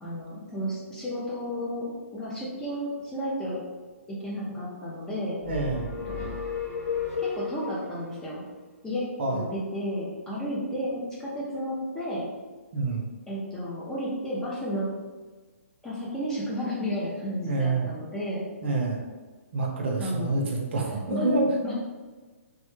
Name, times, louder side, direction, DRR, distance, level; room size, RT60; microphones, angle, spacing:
voice 1, 0.0-3.6 4.1-5.4 5.7-6.3 7.2-8.4 8.8-9.1 9.3-12.3 13.3-14.9 15.8-18.5 20.0-20.5 21.1-21.3 21.6-21.7, equal, 10° left, -7 dB, 0.3 m, -32 dB
sound 1, 5.4-7.9, left 6 dB, 75° left, 0.6 m, -32 dB
voice 2, 5.5-5.9 9.2-9.4 12.7-13.1 17.5-17.9 18.6-19.0 19.5-21.4, right 3 dB, 50° right, -1 dB, 0.5 m, -27 dB
2.1 x 2.0 x 3.0 m, 1.3 s
hypercardioid pair, 150°, 8 cm